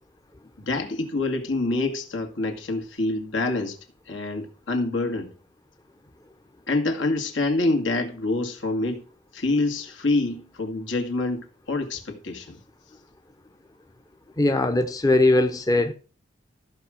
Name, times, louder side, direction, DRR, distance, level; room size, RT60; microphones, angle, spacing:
voice 1, 0.7-3.8 4.1-5.3 6.7-9.0 9.3-12.6, left 2 dB, 85° left, 2.3 m, -26 dB
voice 2, 14.4-15.9, left 2 dB, 20° left, 0.6 m, -20 dB
14.0 x 5.4 x 6.4 m
head